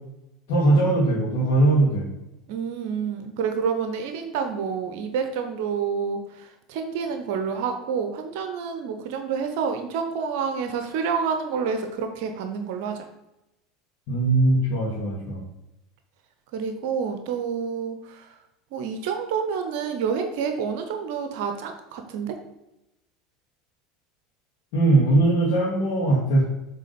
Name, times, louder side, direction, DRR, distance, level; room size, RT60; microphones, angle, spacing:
voice 1, 0.5-2.1 14.1-15.4 24.7-26.4, right 2 dB, 55° left, -7 dB, 1.9 m, -20 dB
voice 2, 2.5-13.1 16.5-18.3 18.7-22.4, right 6 dB, 60° right, 6 dB, 0.7 m, -28 dB
7.6 x 3.4 x 5.1 m, 0.91 s
figure-of-eight pair, 75°, 0 cm